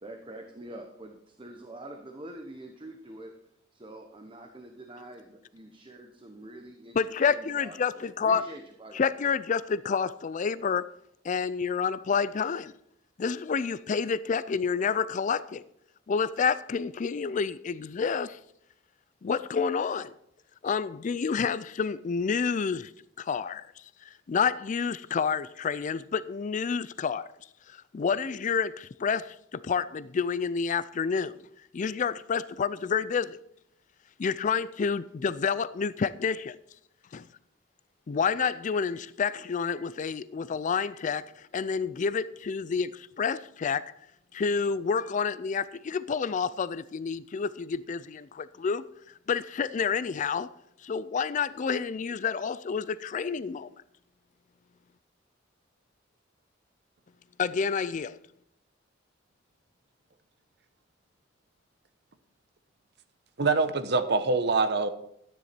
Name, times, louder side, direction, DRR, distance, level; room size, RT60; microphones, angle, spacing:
voice 1, 0.0-3.4 3.7-9.0, right 1 dB, 25° right, 1.0 m, -45 dB
voice 2, 7.0-8.4 8.9-10.9 11.2-12.7 13.2-15.6 16.1-18.4 19.2-20.1 20.6-22.9 23.2-27.3 27.7-31.4 31.7-33.4 34.2-36.6 37.1-37.3 38.1-43.9 44.3-48.9 49.3-50.5 50.8-53.7 57.4-58.2, left 6 dB, 40° left, 0.4 m, -29 dB
voice 3, 63.4-64.9, right 3 dB, 60° right, 0.9 m, -24 dB
13.0 x 10.0 x 4.4 m
head